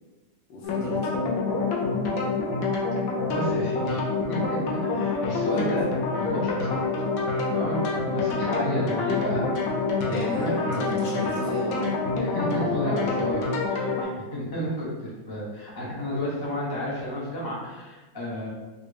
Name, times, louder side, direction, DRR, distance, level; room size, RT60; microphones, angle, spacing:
voice 1, 0.5-1.2 10.2-12.0, equal, 90° left, -2 dB, 1.6 m, -36 dB
sound 1, 0.6-14.0, left 3 dB, 70° left, 0.9 m, -27 dB
voice 2, 3.3-4.0 4.3-5.9 6.2-6.8 7.3-9.5 10.1-11.3 12.3-13.4 13.7-18.5, equal, 40° left, -6 dB, 0.3 m, -32 dB
4.1 x 2.3 x 3.3 m, 1.2 s
omnidirectional pair, 2.0 m